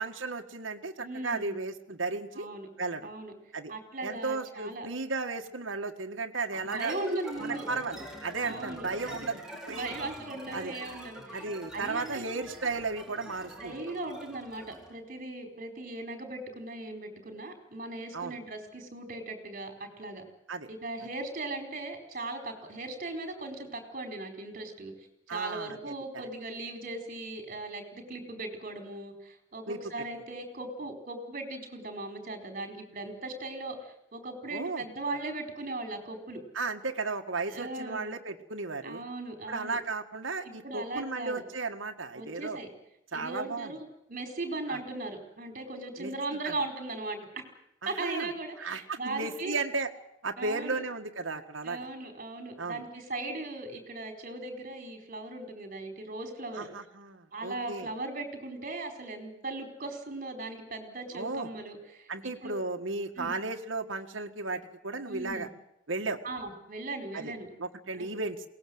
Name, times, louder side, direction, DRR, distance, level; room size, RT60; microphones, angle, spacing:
voice 1, 0.0-2.5 2.8-3.1 3.5-3.7 4.0-6.9 7.4-9.4 9.7-9.9 10.5-10.7 11.3-13.8 18.1-18.4 20.5-20.7 25.3-25.9 29.7-29.8 34.5-34.8 36.5-39.0 39.5-42.6 43.1-43.7 44.7-44.8 46.0-46.1 46.4-46.6 47.8-48.3 48.6-49.9 50.2-51.9 52.6-52.8 56.5-57.9 61.1-61.5 62.1-65.5 65.9-66.2 67.1-67.3 67.6-68.4, right 3 dB, 80° right, 3 dB, 1.7 m, -34 dB
voice 2, 1.0-1.6 2.3-2.7 3.0-3.3 3.7-4.9 6.5-7.7 8.4-9.1 9.7-11.5 11.7-12.3 13.6-20.2 20.7-24.9 25.3-36.4 37.5-38.1 38.8-39.8 40.4-41.4 42.1-42.7 43.1-47.3 47.9-49.5 50.4-50.8 51.6-56.7 57.3-62.6 63.2-63.3 65.1-65.5 66.2-67.5 67.9-68.1, right 2 dB, 45° right, 5 dB, 4.6 m, -38 dB
sound 1, 6.7-15.0, right 1 dB, 5° right, 4.2 m, -45 dB
22.5 x 19.0 x 7.9 m, 0.82 s
head